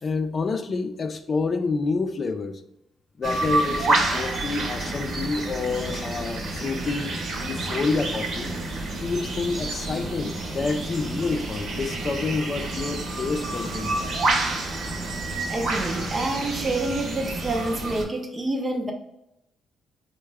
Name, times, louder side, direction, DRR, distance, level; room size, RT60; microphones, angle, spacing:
voice 1, 0.0-2.6 3.2-7.2 7.4-8.5 9.0-14.2, left 4 dB, 40° left, 9 dB, 0.3 m, -28 dB
sound 1, 3.2-18.0, right 2 dB, 60° right, 0.8 m, -29 dB
voice 2, 15.5-18.9, right 2 dB, 30° right, 2 dB, 0.4 m, -28 dB
3.5 x 2.2 x 3.3 m, 0.85 s
cardioid pair, 90°, 0 cm